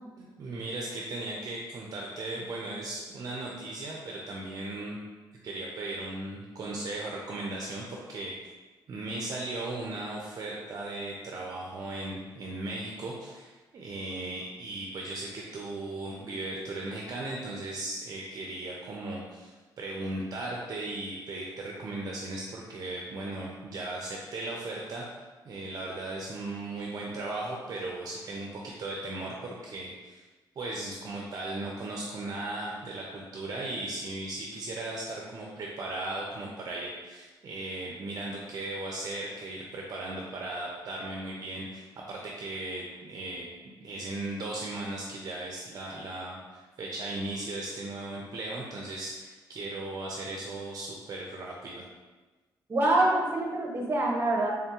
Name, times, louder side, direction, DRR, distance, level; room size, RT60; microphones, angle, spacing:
voice 1, 0.2-5.0 5.4-8.4 8.9-25.1 25.4-30.2 30.6-43.5 43.8-51.8, right 2 dB, 50° right, -2 dB, 0.5 m, -37 dB
voice 2, 52.7-54.5, right 2 dB, 30° right, -1 dB, 0.8 m, -25 dB
3.5 x 3.4 x 2.9 m, 1.3 s
cardioid pair, 120°, 8 cm